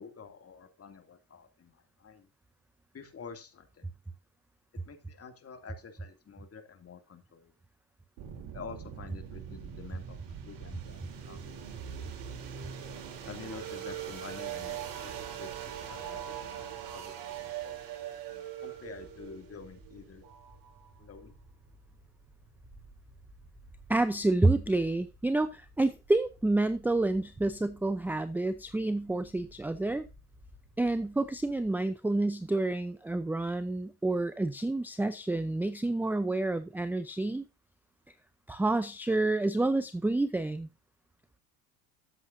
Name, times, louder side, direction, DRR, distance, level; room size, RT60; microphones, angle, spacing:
voice 1, 0.0-2.3 2.9-3.9 4.9-7.5 8.5-11.9 12.1-12.3 13.3-17.9 18.6-20.3 21.0-21.4, left 5 dB, 30° left, 2.6 m, -48 dB
sound 1, 8.2-21.0, right 9 dB, 65° right, 4.2 m, -41 dB
sound 2, 18.7-31.7, right 1 dB, 25° right, 4.3 m, -56 dB
voice 2, 23.9-30.1 30.8-37.4 38.5-40.7, right 2 dB, 5° right, 0.5 m, -29 dB
13.5 x 8.0 x 2.7 m
hypercardioid pair, 80°, 46 cm